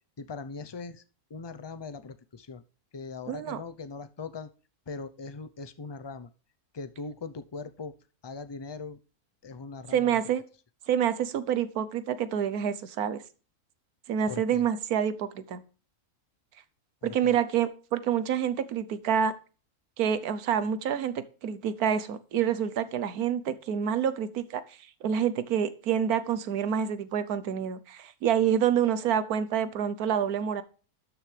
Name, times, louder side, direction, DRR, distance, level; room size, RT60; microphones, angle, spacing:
voice 1, 0.2-1.0 1.3-2.6 2.9-4.5 4.9-6.3 6.7-7.9 8.2-9.0 9.4-10.2 14.3-14.7 17.0-17.3, left 4 dB, 45° left, 12 dB, 0.3 m, -40 dB
voice 2, 3.3-3.6 9.9-10.4 10.9-13.2 14.1-15.6 17.0-19.3 20.0-30.6, right 8 dB, 85° right, 14 dB, 1.3 m, -27 dB
12.5 x 6.5 x 3.3 m, 0.37 s
omnidirectional pair, 1.5 m